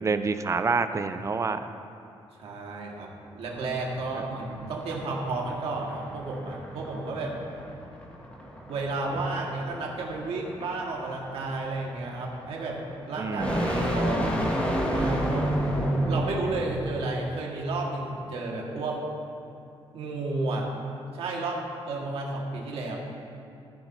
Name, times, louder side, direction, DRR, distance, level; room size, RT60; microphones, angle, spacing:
voice 1, 0.0-1.7 4.2-4.3 13.2-14.1, right 4 dB, 30° right, 10 dB, 0.5 m, -28 dB
voice 2, 2.4-7.4 8.6-12.8 13.1-14.5 14.9-15.5 16.1-19.0 19.9-20.7 21.1-23.0, right 3 dB, 75° right, -1 dB, 1.7 m, -32 dB
sound 1, 3.4-17.0, equal, 15° left, 1.8 m, -31 dB
14.0 x 10.5 x 2.7 m, 2.6 s
cardioid pair, 115°, 10 cm